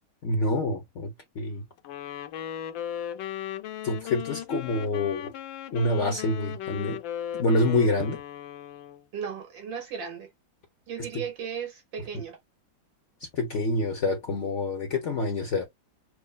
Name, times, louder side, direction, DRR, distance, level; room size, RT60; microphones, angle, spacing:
voice 1, 0.2-1.6 3.8-5.3 5.7-7.0 7.3-8.2 11.1-11.2 12.1-12.2 13.3-15.7, left 2 dB, 60° left, 0.8 m, -27 dB
Wind instrument woodwind instrument, 1.8-9.1, left 10 dB, 80° left, 1.3 m, -37 dB
voice 2, 9.1-10.3 10.9-12.4, right 7 dB, 80° right, 2.1 m, -36 dB
6.2 x 2.2 x 2.2 m
omnidirectional pair, 2.0 m